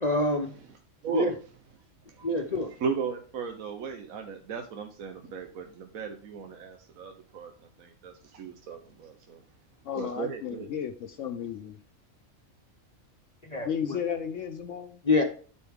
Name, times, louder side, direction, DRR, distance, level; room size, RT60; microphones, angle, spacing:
voice 1, 0.0-0.5 1.1-1.3 2.2-2.7 13.4-13.7 15.0-15.2, left 2 dB, 35° left, 4 dB, 0.8 m, -25 dB
voice 2, 1.0-1.3 2.1-2.3 2.8-9.4 10.0-10.7, right 6 dB, 85° right, 5 dB, 1.4 m, -36 dB
voice 3, 9.8-11.8 13.6-15.0, left 8 dB, 70° left, 6 dB, 1.0 m, -34 dB
12.5 x 4.3 x 3.6 m, 0.40 s
omnidirectional pair, 1.4 m